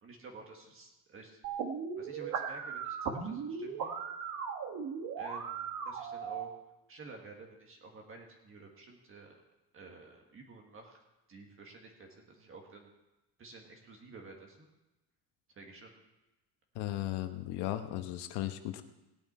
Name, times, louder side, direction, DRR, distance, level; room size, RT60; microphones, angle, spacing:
voice 1, 0.0-1.4 2.0-3.9 5.2-6.5 6.9-9.4 9.7-11.0 11.3-12.9 13.4-14.7 15.5-15.9, right 3 dB, 35° right, 1 dB, 1.6 m, -51 dB
sound 1, 1.4-6.4, right 6 dB, 50° right, 1.3 m, -37 dB
voice 2, 16.7-18.8, left 14 dB, 85° left, 8 dB, 1.2 m, -36 dB
17.5 x 9.2 x 4.3 m, 1.0 s
cardioid pair, 165°, 39 cm